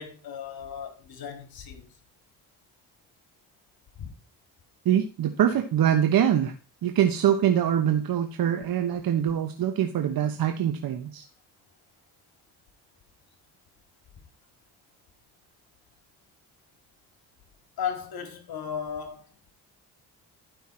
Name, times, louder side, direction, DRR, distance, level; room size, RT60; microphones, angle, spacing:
voice 1, 0.0-1.9 4.0-4.1 17.8-19.3, left 7 dB, 60° left, 2.1 m, -35 dB
voice 2, 4.8-6.5 6.8-11.2, right 10 dB, 60° right, 1.0 m, -24 dB
11.5 x 5.6 x 4.3 m
cardioid pair, 75°, 41 cm